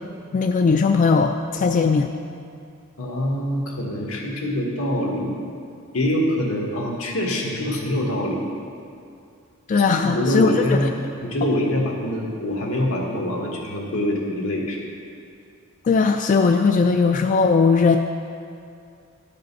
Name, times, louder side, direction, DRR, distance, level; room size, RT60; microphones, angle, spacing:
voice 1, 0.3-2.1 9.7-10.8 15.8-18.0, left 4 dB, 35° left, 5 dB, 0.3 m, -18 dB
voice 2, 3.0-5.3 5.9-8.4 9.9-10.9 11.2-14.8, left 1 dB, 80° left, -1 dB, 1.5 m, -24 dB
11.5 x 5.3 x 5.4 m, 2.4 s
head